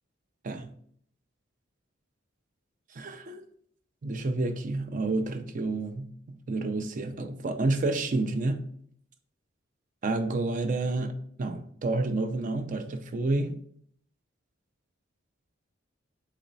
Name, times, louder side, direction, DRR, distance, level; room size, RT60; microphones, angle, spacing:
voice 1, 3.0-3.4 4.0-8.6 10.0-11.1 11.4-13.6, right 2 dB, 40° right, 0.4 m, -29 dB
4.2 x 3.1 x 3.9 m
head